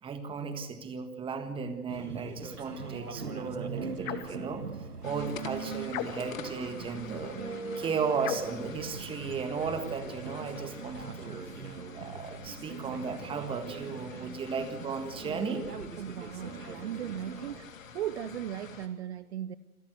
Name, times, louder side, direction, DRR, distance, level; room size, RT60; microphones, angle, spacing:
voice 1, 0.0-4.7 5.0-7.4 7.8-11.4 11.9-15.7, right 5 dB, 10° right, 1.6 m, -35 dB
sound 1, 1.9-17.6, right 4 dB, 85° right, 2.0 m, -41 dB
sound 2, 4.0-4.4 5.9-6.5 8.2-8.6, left 11 dB, 20° left, 1.1 m, -37 dB
sound 3, 5.0-18.9, left 6 dB, 60° left, 2.6 m, -48 dB
voice 2, 16.0-17.7 17.9-19.6, right 11 dB, 45° right, 0.8 m, -37 dB
27.5 x 13.5 x 7.9 m
figure-of-eight pair, 125°, 45 cm